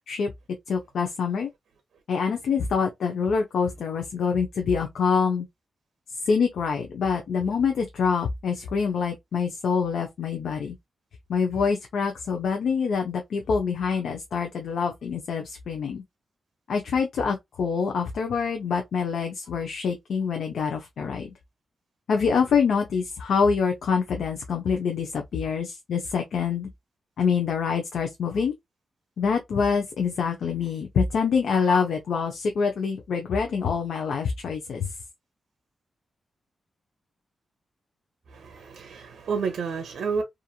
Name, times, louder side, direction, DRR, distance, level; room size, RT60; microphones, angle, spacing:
voice 1, 0.7-1.5 2.1-5.5 6.3-10.8 11.3-16.0 16.7-21.3 22.1-26.7 27.2-28.5 29.2-34.9, left 5 dB, 80° left, 0.5 m, -25 dB
voice 2, 38.3-40.2, right 5 dB, 80° right, 0.6 m, -30 dB
2.9 x 2.5 x 2.3 m
wide cardioid pair, 105°, 0 cm